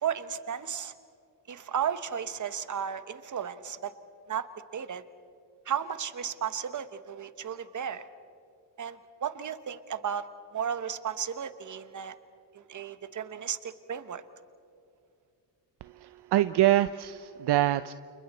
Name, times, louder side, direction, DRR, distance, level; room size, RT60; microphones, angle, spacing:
voice 1, 0.0-0.9 1.5-3.9 4.3-4.5 4.7-5.0 5.7-8.1 8.8-12.1 12.5-14.2, right 8 dB, 45° right, 12 dB, 1.1 m, -34 dB
voice 2, 15.8-17.9, right 14 dB, 70° right, 12 dB, 0.6 m, -25 dB
30.0 x 29.0 x 4.3 m, 2.4 s
cardioid pair, 120°, 41 cm